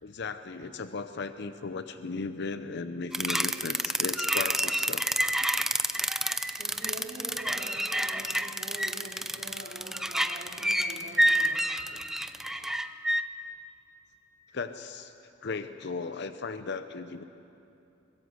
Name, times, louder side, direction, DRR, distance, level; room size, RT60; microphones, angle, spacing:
voice 1, 0.0-5.1 5.4-5.5 14.5-15.1 15.4-17.2, left 4 dB, 60° left, 10 dB, 0.7 m, -36 dB
sound 1, 3.1-13.2, right 1 dB, ahead, 0.6 m, -28 dB
voice 2, 6.6-11.8, right 1 dB, 40° right, -2 dB, 3.0 m, -44 dB
22.0 x 21.5 x 8.0 m, 2.8 s
head